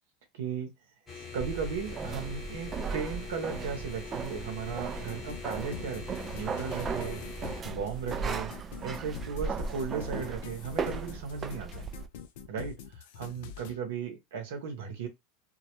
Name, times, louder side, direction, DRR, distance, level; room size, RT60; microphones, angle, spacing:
voice 1, 0.3-0.7 1.1-8.5 8.8-11.9 12.5-15.1, right 6 dB, 80° right, 0.7 m, -36 dB
sound 1, 1.1-7.6, left 5 dB, 25° left, 0.9 m, -44 dB
sound 2, 1.4-12.1, right 5 dB, 30° right, 0.3 m, -37 dB
sound 3, 5.0-13.8, left 7 dB, 70° left, 0.4 m, -45 dB
2.1 x 2.0 x 2.9 m
hypercardioid pair, 100°, 0 cm